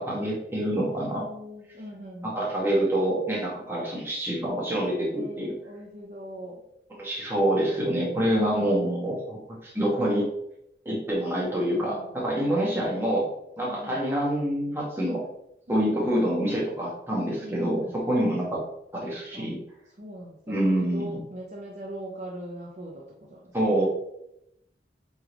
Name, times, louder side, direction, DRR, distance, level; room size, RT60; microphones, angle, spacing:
voice 1, 0.0-1.2 2.2-5.5 7.0-10.3 10.9-13.3 13.6-15.2 15.7-18.6 18.9-19.6 20.5-21.2 23.5-23.9, right 1 dB, 15° right, -5 dB, 1.9 m, -26 dB
voice 2, 0.9-2.4 5.1-6.6 8.3-8.9 11.7-12.1 13.6-14.0 15.7-16.0 17.4-17.9 19.3-19.6 20.0-23.8, equal, 40° right, -3 dB, 0.9 m, -41 dB
8.5 x 4.0 x 3.1 m, 0.78 s
head